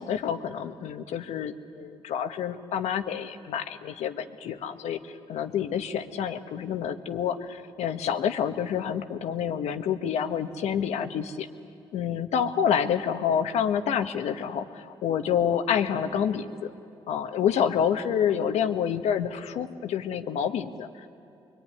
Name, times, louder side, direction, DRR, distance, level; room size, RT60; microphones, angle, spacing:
voice 1, 0.0-11.5 11.9-16.7 17.1-21.1, left 8 dB, 80° left, 8 dB, 1.3 m, -28 dB
25.5 x 22.5 x 9.8 m, 2.7 s
supercardioid pair, 65°, 11 cm